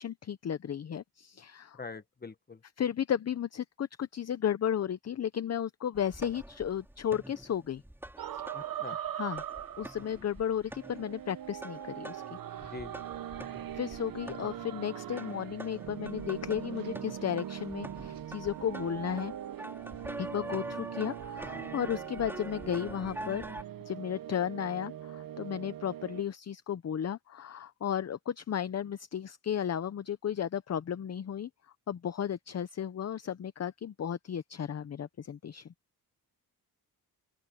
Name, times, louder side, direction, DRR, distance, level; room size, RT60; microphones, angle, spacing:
voice 1, 0.0-1.8 2.8-7.8 8.2-8.5 8.9-9.4 9.8-12.7 13.8-19.3 20.2-31.5 31.9-35.7, left 9 dB, 40° left, 0.7 m, -34 dB
voice 2, 1.7-2.6 8.5-9.0 12.6-13.0, left 4 dB, 25° left, 1.3 m, -44 dB
sound 1, 5.9-9.1 9.4-23.6, right 1 dB, 5° right, 5.6 m, -46 dB
sound 2, 8.2-10.3 10.8-26.2, right 11 dB, 60° right, 0.8 m, -41 dB
open air
wide cardioid pair, 140°, 39 cm